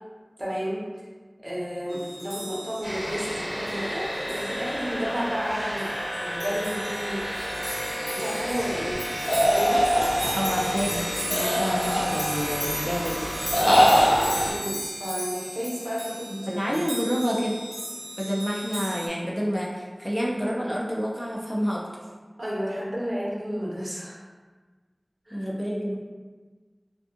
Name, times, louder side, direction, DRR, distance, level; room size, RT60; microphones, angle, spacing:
voice 1, 0.4-0.8 1.4-5.9 6.2-7.4 8.1-9.0 9.4-9.8 14.4-16.8 22.4-24.2 25.3-25.5, equal, 45° right, -7 dB, 0.8 m, -32 dB
sound 1, 1.9-19.1, equal, 10° right, 0.8 m, -36 dB
sound 2, 2.8-14.5, equal, 40° left, 1.5 m, -32 dB
sound 3, 9.3-10.6 11.3-12.4 13.5-14.3, equal, 55° left, 0.6 m, -21 dB
voice 2, 10.3-13.3 16.4-17.6 18.2-21.9 25.3-26.0, equal, 15° left, -4 dB, 0.3 m, -28 dB
2.5 x 2.4 x 2.5 m, 1.4 s
wide cardioid pair, 45°, 0 cm